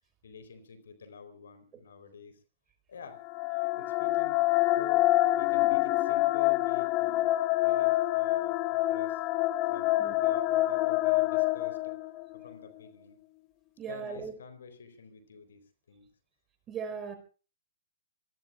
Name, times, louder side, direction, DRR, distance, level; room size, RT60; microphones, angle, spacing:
voice 1, 0.2-2.4 2.9-3.2 3.7-4.4 4.7-7.3 7.6-9.2 9.7-12.0 12.3-13.2 13.9-16.1, left 6 dB, 65° left, 11 dB, 4.0 m, -48 dB
sound 1, 3.1-12.4, left 17 dB, 30° left, 0.8 m, -26 dB
voice 2, 13.8-14.3 16.7-17.2, right 6 dB, 20° right, 8 dB, 4.9 m, -38 dB
27.5 x 20.0 x 2.5 m, 0.37 s
figure-of-eight pair, 115°, 0 cm